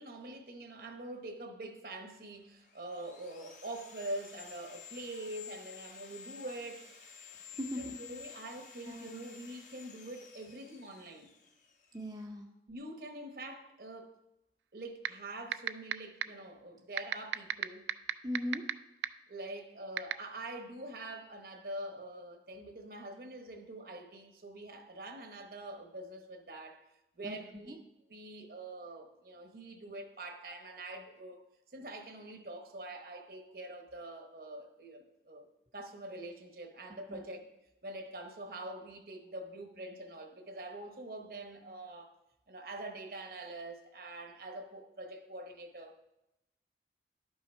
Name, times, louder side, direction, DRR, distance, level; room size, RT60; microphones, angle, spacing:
voice 1, 0.0-6.9 7.8-11.3 12.7-14.2 14.7-17.9 19.3-26.8 27.2-27.8 28.1-31.4 31.7-35.5 35.7-37.5 37.8-42.1 42.5-45.9, right 1 dB, 55° right, 0.9 m, -45 dB
Sawing, 2.4-12.2, left 6 dB, 45° left, 0.9 m, -52 dB
voice 2, 7.5-8.0 8.3-8.4 8.9-9.2 11.9-12.5 18.2-18.6 27.2-27.4 27.7-27.8 37.1-37.2, equal, 25° right, 0.5 m, -39 dB
sound 1, 15.0-15.1 15.5-15.9 16.2-16.3 17.0-18.7 19.0-19.1 20.0-20.1, right 11 dB, 80° right, 0.3 m, -29 dB
11.0 x 5.6 x 4.4 m
head